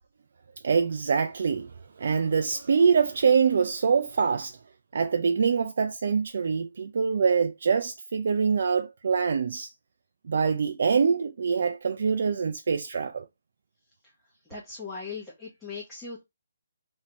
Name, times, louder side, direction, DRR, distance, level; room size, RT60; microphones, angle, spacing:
voice 1, 0.6-1.7 2.0-4.6 4.9-9.7 10.2-13.2, right 6 dB, 60° right, 0.4 m, -24 dB
voice 2, 14.5-16.2, left 4 dB, 5° left, 1.0 m, -39 dB
3.1 x 2.7 x 2.8 m
hypercardioid pair, 160°, 0 cm